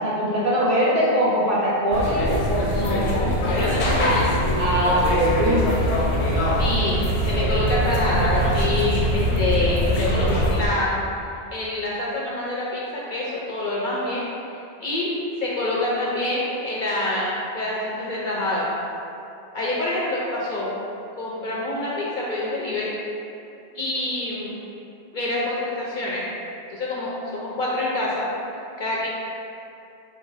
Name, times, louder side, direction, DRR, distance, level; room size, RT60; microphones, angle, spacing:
voice 1, 0.0-2.8 4.6-5.9, equal, 60° right, -6 dB, 0.8 m, -21 dB
sound 1, 1.9-10.7, equal, 80° left, 0.9 m, -22 dB
voice 2, 2.7-4.5 6.5-7.0 7.3-11.1 11.5-14.2 14.8-15.1 15.4-18.7 19.5-20.7 21.2-22.9 23.7-24.5 25.1-26.2 26.7-28.3 28.8-29.1, left 1 dB, 55° left, -5 dB, 0.6 m, -26 dB
3.8 x 2.5 x 3.8 m, 2.7 s
omnidirectional pair, 1.1 m